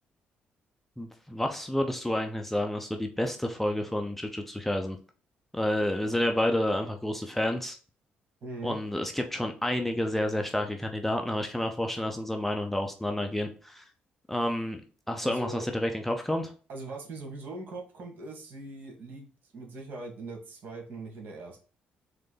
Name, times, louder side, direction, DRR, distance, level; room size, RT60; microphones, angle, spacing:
voice 1, 1.0-5.0 5.5-7.8 8.6-13.8 14.3-14.8 15.1-16.5, left 1 dB, 5° left, 4 dB, 0.7 m, -29 dB
voice 2, 8.4-8.8 15.2-15.7 16.7-21.6, right 2 dB, 60° right, 2 dB, 2.0 m, -41 dB
3.8 x 3.3 x 3.9 m, 0.39 s
cardioid pair, 90°, 3 cm